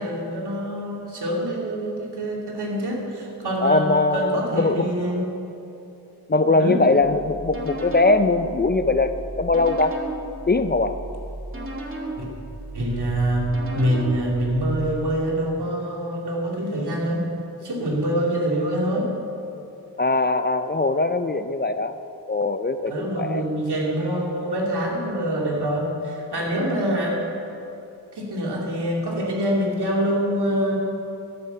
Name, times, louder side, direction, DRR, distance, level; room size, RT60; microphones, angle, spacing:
voice 1, 0.0-5.3 6.4-6.8 12.2-12.3 12.7-17.2 17.6-19.1 22.9-27.2 28.1-30.8, equal, 75° right, -2 dB, 2.8 m, -25 dB
voice 2, 3.6-4.9 6.3-9.9 10.5-11.0 20.0-22.0 22.3-23.4, left 3 dB, 25° left, 10 dB, 0.5 m, -21 dB
sound 1, 7.0-14.9, right 2 dB, 30° right, 2.0 m, -35 dB
14.0 x 8.8 x 6.9 m, 2.8 s
wide cardioid pair, 75°, 40 cm